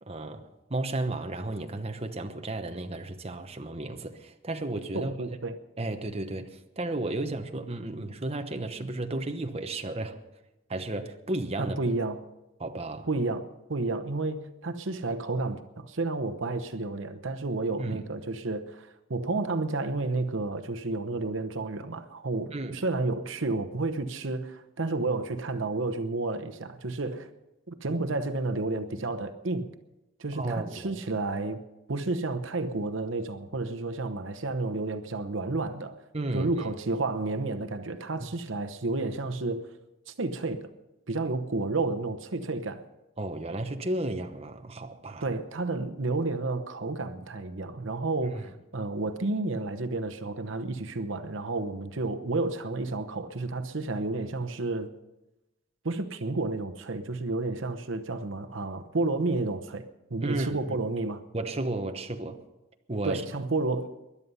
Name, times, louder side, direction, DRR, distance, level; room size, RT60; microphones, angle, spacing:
voice 1, 0.0-5.2 5.8-10.2 10.7-11.8 12.6-13.1 17.8-18.0 22.5-22.8 30.3-31.0 36.1-36.7 43.2-45.3 48.2-48.4 60.2-60.8 61.3-62.4 62.9-63.2, right 2 dB, 30° right, 1.0 m, -33 dB
voice 2, 4.9-5.6 11.6-12.2 13.1-27.3 27.7-29.7 30.2-31.6 31.9-36.0 36.3-39.7 40.1-40.7 41.1-42.8 45.2-54.9 55.8-59.8 60.1-61.2 63.0-64.0, right 3 dB, 70° right, 1.0 m, -31 dB
21.0 x 11.0 x 5.5 m
head